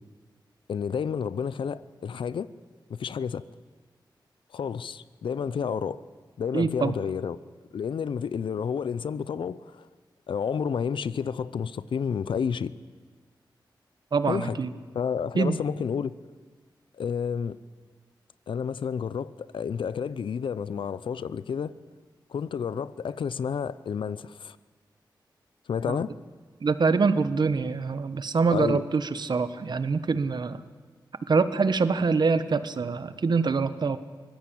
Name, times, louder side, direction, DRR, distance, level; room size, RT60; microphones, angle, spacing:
voice 1, 0.7-2.5 2.9-3.4 4.5-6.0 6.4-7.4 7.7-9.9 10.3-12.7 14.2-14.6 14.9-16.1 17.0-17.6 18.5-21.7 22.3-24.6 25.7-26.1 28.5-28.8, left 7 dB, 85° left, 0.7 m, -30 dB
voice 2, 6.5-6.9 14.1-14.7 15.4-15.6 25.9-26.0 26.6-30.6 31.3-34.0, right 4 dB, 60° right, 1.2 m, -25 dB
24.0 x 16.5 x 8.7 m
wide cardioid pair, 75°, 8 cm